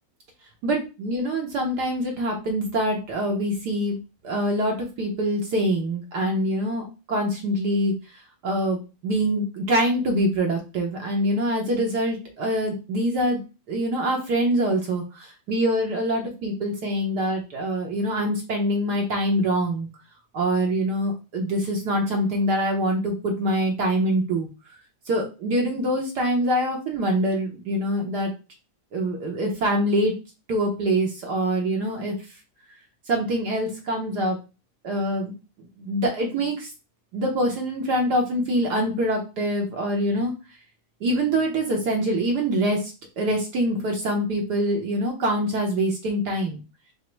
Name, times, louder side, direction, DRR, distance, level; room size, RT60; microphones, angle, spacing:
voice 1, 0.6-4.0 4.2-7.9 8.4-13.4 13.7-19.9 20.3-24.5 25.1-28.3 28.9-30.1 30.5-32.2 33.1-34.4 34.8-35.3 35.8-36.7 37.1-40.3 41.0-46.6, right 1 dB, 70° right, 1 dB, 1.4 m, -24 dB
5.0 x 2.1 x 4.4 m, 0.30 s
omnidirectional pair, 1.8 m